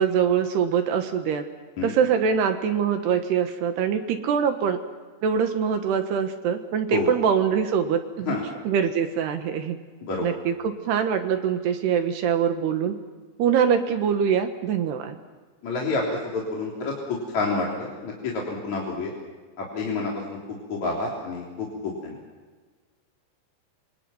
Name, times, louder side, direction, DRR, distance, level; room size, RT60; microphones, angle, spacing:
voice 1, 0.0-1.5 1.8-4.8 5.2-8.4 8.6-9.8 10.2-13.0 13.4-15.1, right 7 dB, 70° right, 7 dB, 3.3 m, -23 dB
voice 2, 15.6-19.1 19.6-20.4 20.7-22.2, left 3 dB, 40° left, -3 dB, 4.5 m, -28 dB
28.5 x 26.5 x 5.9 m, 1.4 s
omnidirectional pair, 5.2 m